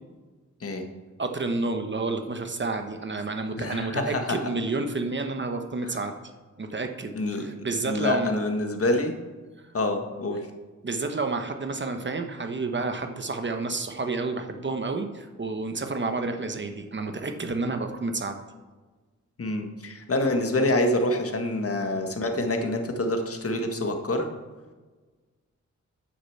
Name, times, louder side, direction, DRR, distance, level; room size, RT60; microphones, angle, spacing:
voice 1, 1.2-6.1 6.6-8.3 9.6-9.7 10.8-18.4, right 3 dB, 40° right, 6 dB, 1.1 m, -30 dB
voice 2, 3.6-4.4 5.8-5.9 7.1-7.5 7.8-9.1 9.7-10.5 19.4-24.3, left 1 dB, 50° left, 4 dB, 1.6 m, -26 dB
9.8 x 6.7 x 7.1 m, 1.3 s
wide cardioid pair, 80°, 30 cm